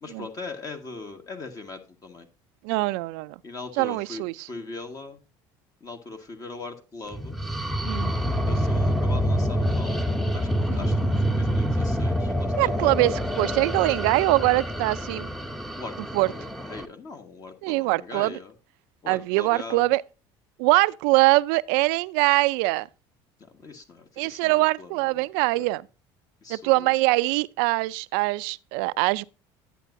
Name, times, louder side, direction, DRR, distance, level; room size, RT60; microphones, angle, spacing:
voice 1, 0.0-2.3 3.4-5.2 5.8-7.4 8.5-10.5 10.7-12.9 15.8-18.5 19.0-19.9 23.5-24.9 25.2-25.3 26.4-26.9, left 3 dB, 35° left, 1.5 m, -40 dB
voice 2, 2.6-3.4 3.8-4.5 7.8-8.1 10.7-10.9 12.6-15.3 16.1-16.3 17.6-18.4 19.1-20.0 20.6-22.9 24.2-25.8 26.5-29.2, right 21 dB, 85° right, 0.4 m, -23 dB
sound 1, 7.1-16.9, equal, ahead, 0.8 m, -26 dB
10.0 x 8.3 x 2.6 m
supercardioid pair, 105°, 10 cm